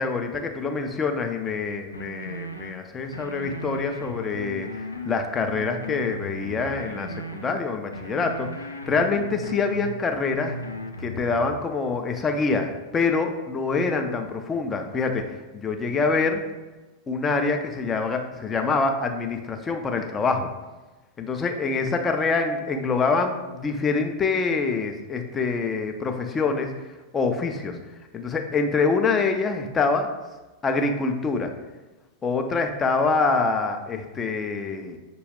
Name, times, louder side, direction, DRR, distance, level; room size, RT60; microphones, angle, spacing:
voice 1, 0.0-4.7 5.0-10.6 11.0-16.4 17.1-20.5 21.2-26.7 27.1-27.8 28.1-30.1 30.6-31.5 32.2-35.0, left 4 dB, 20° left, 5 dB, 0.5 m, -25 dB
sound 1, 1.9-2.7 3.1-5.1 5.5-7.5 7.9-9.9 10.3-11.5, left 1 dB, 80° left, 0.4 m, -36 dB
6.2 x 2.3 x 3.4 m, 1.2 s
figure-of-eight pair, 90°, 0 cm